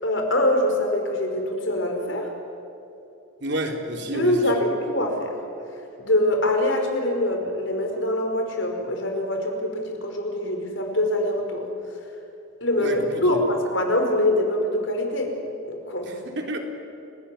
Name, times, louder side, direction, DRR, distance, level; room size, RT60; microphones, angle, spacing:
voice 1, 0.0-2.3 4.1-5.4 6.0-11.6 12.6-15.4 15.7-16.1, left 1 dB, 70° left, 3 dB, 5.1 m, -24 dB
voice 2, 3.4-4.6 12.8-13.4 16.0-16.6, right 1 dB, 55° right, 3 dB, 3.7 m, -30 dB
29.5 x 19.0 x 9.9 m, 3.0 s
head